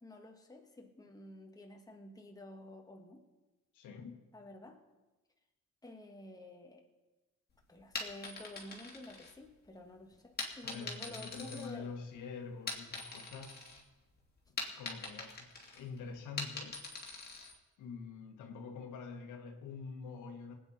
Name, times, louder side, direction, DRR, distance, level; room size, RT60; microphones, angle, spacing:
voice 1, 0.0-3.3 4.3-4.8 5.8-6.8 7.7-11.9, left 1 dB, 10° left, 1.7 m, -51 dB
voice 2, 3.7-4.2 10.6-13.6 14.8-16.8 17.8-20.5, left 5 dB, 90° left, 1.6 m, -46 dB
sound 1, 7.8-9.7 10.4-12.2 12.5-13.8 14.1-17.6, left 3 dB, 30° left, 2.5 m, -43 dB
20.0 x 8.9 x 4.3 m
cardioid pair, 90°, 30 cm